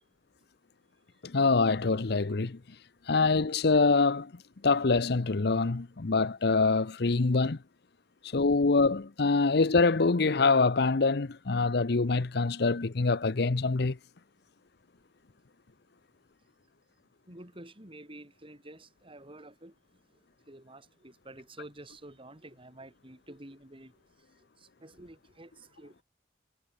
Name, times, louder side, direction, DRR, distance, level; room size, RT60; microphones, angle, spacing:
voice 1, 1.2-2.6 3.1-4.3 4.6-7.6 8.3-14.0, left 3 dB, 65° left, 0.8 m, -25 dB
voice 2, 17.3-26.0, right 1 dB, 30° right, 3.9 m, -50 dB
head